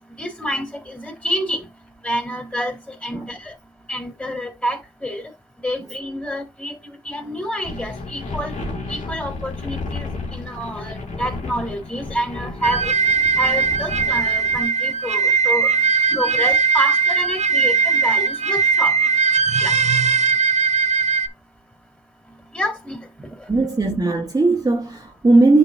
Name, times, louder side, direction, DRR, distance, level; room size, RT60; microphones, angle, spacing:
voice 1, 0.2-1.7 2.0-3.5 3.9-5.2 5.6-6.8 7.1-8.5 8.9-12.9 13.4-15.7 16.2-19.0 19.6-19.7 22.5-23.0, equal, 10° left, 3.5 m, -28 dB
sound 1, 7.6-14.6, left 3 dB, 75° left, 2.1 m, -32 dB
sound 2, 12.6-21.3, right 5 dB, 60° right, 0.6 m, -19 dB
voice 2, 23.5-25.6, right 2 dB, 30° right, 1.2 m, -17 dB
10.5 x 3.8 x 2.7 m
cardioid pair, 50°, 13 cm